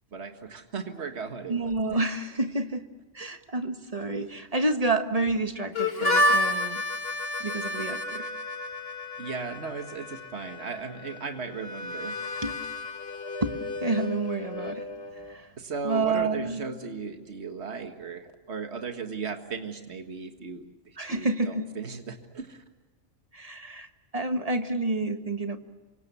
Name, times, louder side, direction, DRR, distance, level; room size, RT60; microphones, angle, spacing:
voice 1, 0.1-2.1 9.2-12.2 15.6-22.6, right 5 dB, 65° right, 6 dB, 2.0 m, -36 dB
voice 2, 1.5-2.8 3.1-6.8 7.4-8.3 12.4-12.5 13.4-14.8 15.3-15.5 15.8-16.6 21.0-21.7 23.3-23.9 24.1-25.6, right 2 dB, 30° right, 7 dB, 1.5 m, -29 dB
Harmonica, 5.7-15.4, left 1 dB, 55° left, 1.8 m, -31 dB
28.5 x 25.0 x 7.0 m, 1.2 s
omnidirectional pair, 1.2 m